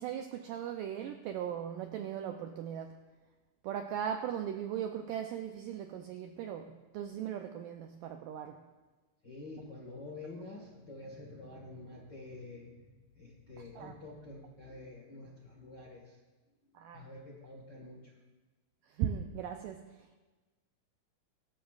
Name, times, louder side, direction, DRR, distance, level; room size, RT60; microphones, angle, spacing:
voice 1, 0.0-3.0 3.6-8.6 13.8-13.9 16.7-17.1 18.8-20.2, right 9 dB, 85° right, 5 dB, 1.9 m, -38 dB
voice 2, 9.2-16.2 16.9-18.1, left 2 dB, 50° left, -3 dB, 1.3 m, -48 dB
23.5 x 12.5 x 2.4 m, 1.2 s
omnidirectional pair, 4.5 m